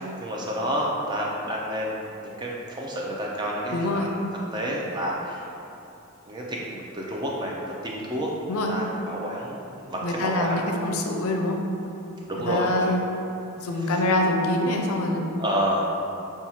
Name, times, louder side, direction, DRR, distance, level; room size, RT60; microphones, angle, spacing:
voice 1, 0.0-4.1 4.5-5.5 6.3-10.6 12.3-13.0 13.8-14.0 15.4-16.0, equal, 20° right, -3 dB, 0.4 m, -29 dB
voice 2, 3.7-4.1 8.5-8.7 10.0-11.6 12.5-13.0 13.6-15.2, left 1 dB, 75° left, 2 dB, 0.4 m, -25 dB
5.8 x 2.3 x 2.8 m, 2.7 s
head